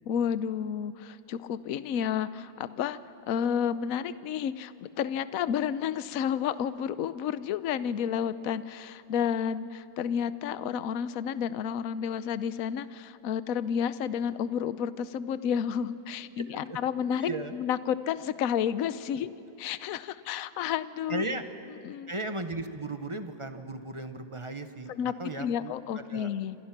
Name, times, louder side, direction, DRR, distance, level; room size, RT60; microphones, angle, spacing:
voice 1, 0.1-3.0 3.3-19.3 19.6-21.2 21.8-22.1 24.9-26.6, left 8 dB, 60° left, 14 dB, 1.1 m, -31 dB
voice 2, 16.4-16.8 17.2-17.5 19.2-19.3 21.1-21.4 22.1-26.3, right 2 dB, 20° right, 8 dB, 0.9 m, -36 dB
28.5 x 26.5 x 6.0 m, 2.7 s
omnidirectional pair, 1.8 m